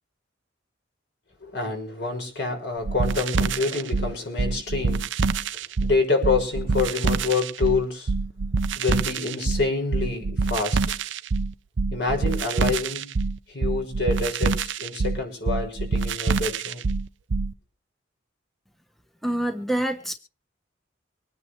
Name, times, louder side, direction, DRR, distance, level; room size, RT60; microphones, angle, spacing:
voice 1, 1.4-5.0 5.8-8.1 8.8-10.8 11.9-13.1 13.5-16.8, left 3 dB, 60° left, 2 dB, 6.4 m, -27 dB
sound 1, 2.8-17.5, right 4 dB, 75° right, 0.7 m, -26 dB
voice 2, 19.2-20.2, right 1 dB, ahead, 6 dB, 1.0 m, -26 dB
25.0 x 9.7 x 3.2 m, 0.36 s
head